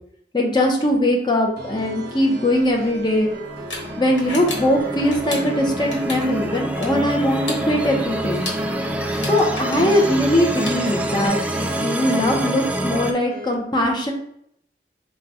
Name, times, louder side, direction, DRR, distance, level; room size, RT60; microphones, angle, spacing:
voice 1, 0.3-3.3 4.0-8.4 9.3-11.4 11.7-14.1, left 1 dB, 25° left, 0 dB, 0.8 m, -20 dB
sound 1, 1.6-13.5, right 2 dB, 60° right, 0.8 m, -37 dB
sound 2, 2.6-11.3, left 2 dB, 85° left, 1.3 m, -36 dB
sound 3, 3.2-13.1, right 1 dB, 10° right, 0.3 m, -27 dB
4.7 x 2.3 x 4.1 m, 0.70 s
head